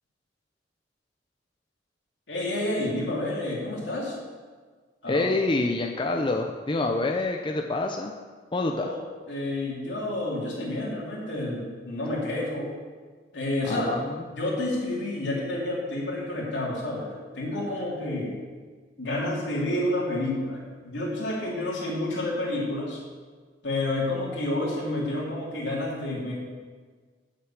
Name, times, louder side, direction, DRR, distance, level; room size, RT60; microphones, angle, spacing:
voice 1, 2.3-4.2 5.0-5.3 8.8-9.0 9.3-12.7 13.3-13.9 14.3-18.4 19.0-23.0 23.6-26.3, left 1 dB, 75° left, -4 dB, 3.2 m, -29 dB
voice 2, 5.1-8.1 8.5-8.9 13.7-14.2, left 2 dB, 25° left, 2 dB, 0.5 m, -27 dB
7.9 x 6.7 x 7.5 m, 1.5 s
head